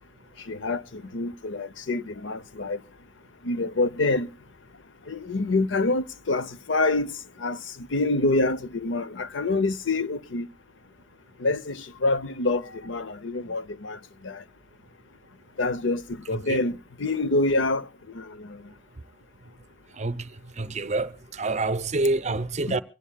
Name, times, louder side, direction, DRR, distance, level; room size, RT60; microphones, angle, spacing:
voice 1, 0.5-2.8 3.4-4.3 5.1-7.1 7.4-7.6 7.9-10.5 11.4-14.4 15.6-17.9 18.1-18.7 22.7-22.8, left 2 dB, 70° left, 0.7 m, -26 dB
voice 2, 20.0-20.3 20.6-22.8, right 2 dB, 35° right, 0.7 m, -27 dB
24.5 x 17.5 x 2.3 m
head